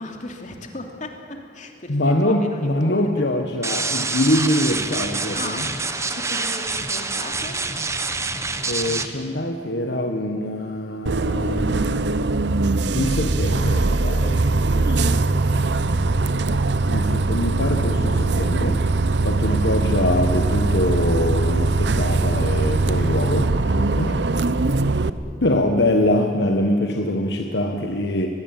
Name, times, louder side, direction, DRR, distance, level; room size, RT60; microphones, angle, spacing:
voice 1, 0.0-3.1 5.3-5.7 6.1-7.6 15.5-16.1 16.7-17.1 23.8-24.4, left 2 dB, 45° left, 3 dB, 2.9 m, -37 dB
voice 2, 1.9-5.7 8.7-11.9 12.9-14.4 14.7-15.3 16.9-18.8 19.2-24.1 25.4-28.3, left 1 dB, 65° left, 4 dB, 1.4 m, -23 dB
sound 1, 3.6-9.1, right 3 dB, 15° right, 1.2 m, -26 dB
Bus, 11.1-25.1, right 3 dB, 65° right, 0.8 m, -21 dB
23.0 x 21.5 x 9.0 m, 2.4 s
head